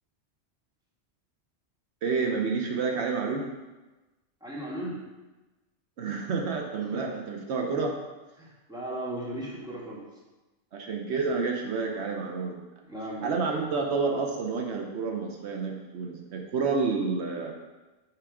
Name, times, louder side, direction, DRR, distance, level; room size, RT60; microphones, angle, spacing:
voice 1, 2.0-3.5 6.0-7.9 10.7-12.6 13.2-17.5, right 4 dB, 75° right, 1 dB, 1.1 m, -29 dB
voice 2, 4.4-5.0 6.8-7.1 8.4-10.0 12.9-13.3, right 1 dB, 5° right, -5 dB, 1.5 m, -36 dB
5.9 x 5.1 x 4.8 m, 1.1 s
omnidirectional pair, 1.2 m